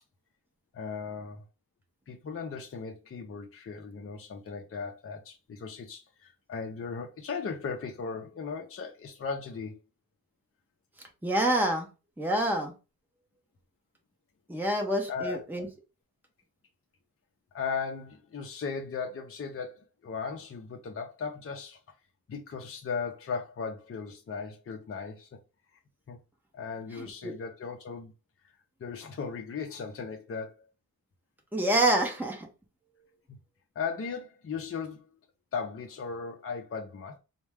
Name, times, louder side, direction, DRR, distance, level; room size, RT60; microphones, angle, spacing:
voice 1, 0.7-1.5 2.1-9.8 15.1-15.4 17.5-21.8 22.3-25.4 26.1-26.2 26.5-28.1 28.8-30.7 33.3-33.4 33.8-35.1 35.5-37.2, left 5 dB, 40° left, 0.6 m, -37 dB
voice 2, 11.2-11.9 12.2-12.7 14.5-15.7 27.0-27.3 31.5-32.5, right 1 dB, 5° right, 0.8 m, -27 dB
4.3 x 2.1 x 3.5 m
wide cardioid pair, 130°, 37 cm